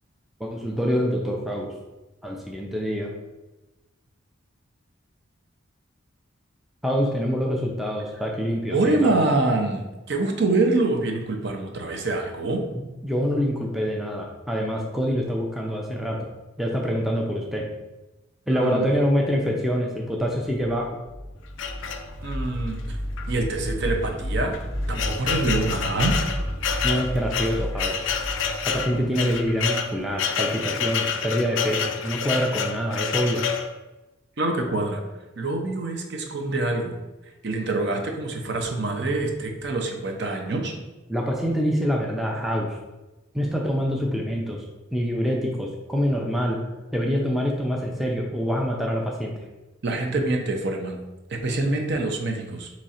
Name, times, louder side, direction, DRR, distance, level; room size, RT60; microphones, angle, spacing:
voice 1, 0.4-1.7 2.2-3.1 6.8-9.1 12.7-16.2 16.6-17.6 18.5-21.0 26.8-28.1 28.6-33.4 41.1-42.7 43.3-44.6 44.9-46.6 46.9-49.4, equal, ahead, -1 dB, 0.4 m, -25 dB
voice 2, 8.7-12.6 18.5-18.9 22.2-23.0 23.3-24.5 24.9-26.1 34.4-35.0 35.4-36.9 37.4-40.8 49.8-51.0 51.3-52.7, right 2 dB, 55° right, 3 dB, 0.6 m, -25 dB
sound 1, 21.0-30.2, equal, 30° right, 0.9 m, -32 dB
sound 2, 21.6-22.4 23.2-23.3 23.6-23.7 24.4-33.7, left 6 dB, 65° left, 0.4 m, -28 dB
3.7 x 3.0 x 4.2 m, 1.1 s
head